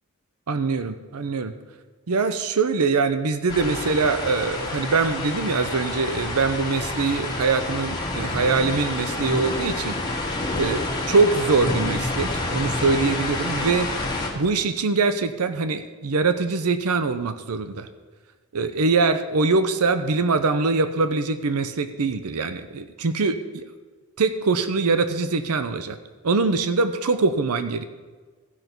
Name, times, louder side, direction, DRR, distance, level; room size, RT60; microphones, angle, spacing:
voice 1, 0.5-1.5 2.1-10.0 10.6-13.9 14.3-17.9 18.5-23.6 24.2-26.0 26.2-27.8, right 4 dB, 90° right, 11 dB, 0.7 m, -23 dB
sound 1, 3.5-14.3, left 2 dB, 20° left, 1.7 m, -28 dB
15.0 x 5.3 x 6.0 m, 1.4 s
head